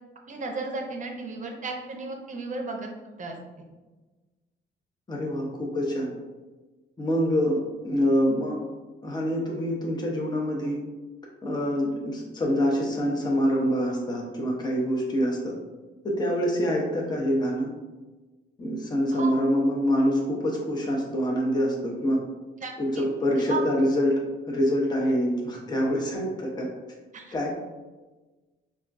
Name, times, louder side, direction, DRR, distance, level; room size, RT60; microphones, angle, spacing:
voice 1, 0.3-2.9 3.2-3.7 19.1-19.4 22.6-23.1 23.5-23.6 27.1-27.3, right 3 dB, 40° right, 2 dB, 0.6 m, -34 dB
voice 2, 5.1-6.1 7.0-8.6 9.0-10.8 11.4-15.5 16.0-17.7 18.6-22.2 22.8-26.7 27.3-27.5, equal, 20° left, -1 dB, 0.7 m, -25 dB
4.2 x 2.3 x 2.5 m, 1.2 s
cardioid pair, 90°, 20 cm